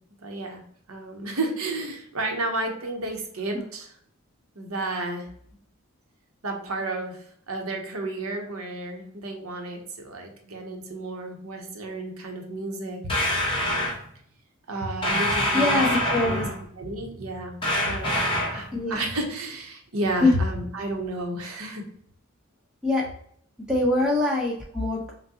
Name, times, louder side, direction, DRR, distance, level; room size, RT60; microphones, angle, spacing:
voice 1, 0.2-0.6 0.9-3.9 4.6-5.3 6.4-13.3 14.7-15.9 16.2-16.5 16.8-21.9, right 2 dB, 85° right, 2 dB, 0.9 m, -32 dB
sound 1, 13.1-14.0 15.0-16.6 17.6-18.7, left 1 dB, 25° left, 1.1 m, -25 dB
voice 2, 15.5-16.5 18.7-19.0 20.2-20.3 22.8-23.0 23.7-25.1, left 2 dB, 5° right, -4 dB, 0.9 m, -23 dB
5.8 x 2.2 x 2.8 m, 0.64 s
head